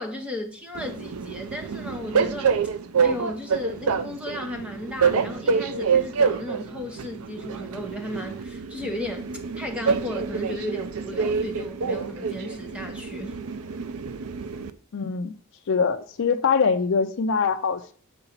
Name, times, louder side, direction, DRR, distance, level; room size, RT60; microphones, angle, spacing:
voice 1, 0.0-2.5 3.0-9.3 9.5-13.4, left 1 dB, 5° right, 0.7 m, -35 dB
Train, 0.7-14.7, right 5 dB, 75° right, 0.5 m, -27 dB
voice 2, 14.9-15.3 15.7-17.9, left 5 dB, 55° left, 0.4 m, -23 dB
6.9 x 3.9 x 5.6 m
head